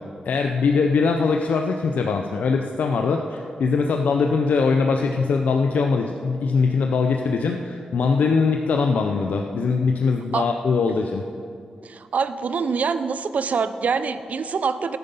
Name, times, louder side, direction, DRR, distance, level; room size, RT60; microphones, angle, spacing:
voice 1, 0.3-11.2, left 4 dB, 85° left, 3 dB, 0.6 m, -21 dB
voice 2, 11.8-15.0, right 5 dB, 70° right, 12 dB, 0.6 m, -25 dB
13.0 x 9.5 x 5.4 m, 2.5 s
cardioid pair, 60°, 3 cm